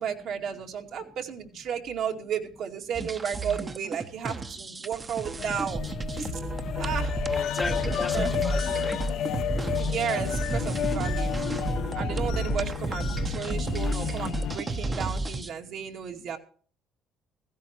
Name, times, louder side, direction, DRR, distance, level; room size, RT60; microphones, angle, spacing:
voice 1, 0.0-5.8 6.2-6.4 6.8-7.2 8.1-8.3 9.8-11.5 11.9-16.4, right 8 dB, 65° right, 2.3 m, -33 dB
sound 1, 2.9-15.5, right 2 dB, 30° right, 1.0 m, -32 dB
sound 2, 5.4-14.6, left 9 dB, 55° left, 0.9 m, -34 dB
sound 3, 7.0-15.2, left 13 dB, 75° left, 0.5 m, -37 dB
voice 2, 7.3-9.0 12.3-12.5, left 2 dB, 15° left, 0.9 m, -35 dB
16.5 x 15.0 x 3.0 m
supercardioid pair, 90°, 0 cm